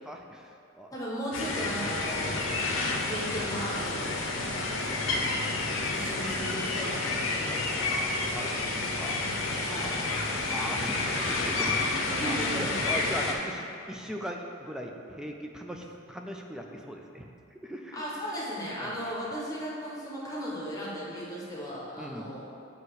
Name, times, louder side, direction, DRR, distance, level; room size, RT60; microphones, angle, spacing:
voice 1, 0.1-0.9 7.8-10.0 10.5-18.0 18.8-18.9 22.0-22.3, equal, 5° right, 2 dB, 0.3 m, -40 dB
voice 2, 0.9-2.4 3.1-4.2 5.9-7.6 9.7-10.0 12.2-12.8 17.9-22.4, equal, 15° left, -6 dB, 0.9 m, -36 dB
sound 1, 1.3-13.3, left 3 dB, 65° left, 0.7 m, -30 dB
7.9 x 2.8 x 4.7 m, 2.6 s
head